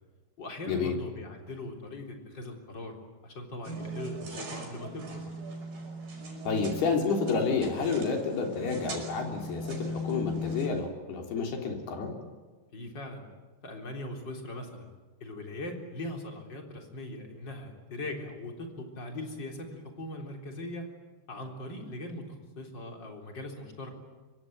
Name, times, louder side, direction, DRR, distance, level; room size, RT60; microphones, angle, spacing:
voice 1, 0.4-3.0 3.2-5.2 12.7-13.3 13.6-14.9 15.2-20.9 21.3-22.3 22.6-23.9, left 1 dB, 25° left, 2 dB, 3.9 m, -40 dB
sound 1, 3.6-10.7, equal, 60° right, 7.2 m, -38 dB
voice 2, 6.5-12.1, left 5 dB, 70° left, 2 dB, 5.4 m, -30 dB
26.0 x 24.0 x 9.4 m, 1.3 s
omnidirectional pair, 4.9 m